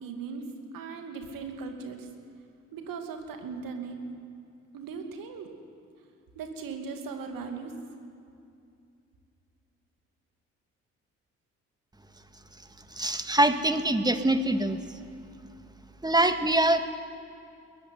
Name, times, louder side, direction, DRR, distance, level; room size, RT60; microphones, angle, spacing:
voice 1, 0.0-0.4 0.7-2.1 2.7-4.1 4.7-5.5 6.3-7.7, right 5 dB, 65° right, 4 dB, 2.6 m, -38 dB
voice 2, 12.9-14.8 16.0-16.8, right 1 dB, 10° right, 8 dB, 1.9 m, -24 dB
20.5 x 14.5 x 9.6 m, 2.5 s
figure-of-eight pair, 40°, 37 cm